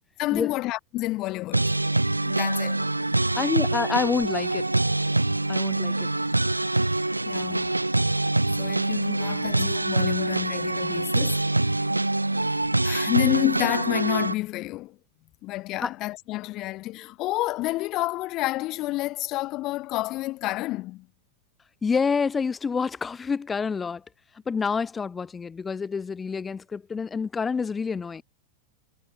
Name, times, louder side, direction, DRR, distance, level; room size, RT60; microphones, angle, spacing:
voice 1, 0.2-1.7 2.2-2.8 7.2-7.8 8.6-11.9 12.8-15.0 15.4-21.1, left 18 dB, 40° left, 1.7 m, -29 dB
sound 1, 1.5-14.3, right 2 dB, 85° right, 0.3 m, -25 dB
voice 2, 3.3-4.7 5.5-6.1 15.8-15.9 21.8-24.0 24.5-28.2, left 5 dB, 15° left, 1.1 m, -27 dB
figure-of-eight pair, 90°, 0 cm